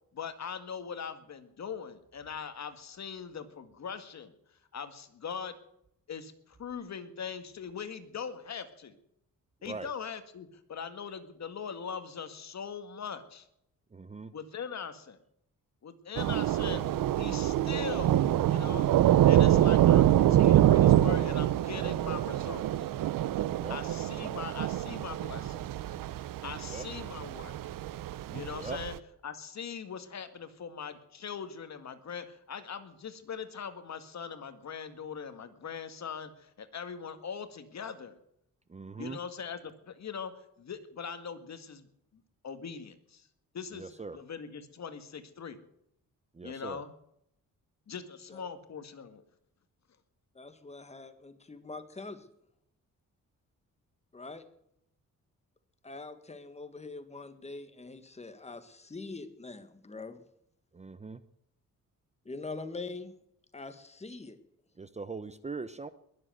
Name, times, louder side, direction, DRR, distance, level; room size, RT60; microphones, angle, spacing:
voice 1, 0.1-4.3 4.7-5.6 6.1-9.0 9.6-13.5 14.3-15.2 15.8-18.9 19.3-22.9 23.7-26.0 26.4-27.6 28.3-29.0 29.2-38.2 39.0-40.3 40.6-41.9 42.1-43.3 43.5-45.6 46.4-46.9 47.9-49.2, left 6 dB, 55° left, 10 dB, 1.9 m, -41 dB
voice 2, 13.9-14.3 19.7-19.8 23.5-23.8 26.7-26.8 28.6-28.8 38.7-39.2 43.8-44.2 46.4-46.8 60.7-61.2 64.8-65.9, right 4 dB, 20° right, 14 dB, 0.7 m, -40 dB
Thunder / Rain, 16.2-29.0, right 12 dB, 80° right, 0.7 m, -25 dB
voice 3, 50.4-52.3 54.1-54.4 55.8-60.2 62.3-63.1 63.5-64.4, left 3 dB, 20° left, 10 dB, 1.8 m, -43 dB
21.0 x 7.7 x 8.0 m, 0.75 s
cardioid pair, 100°, 33 cm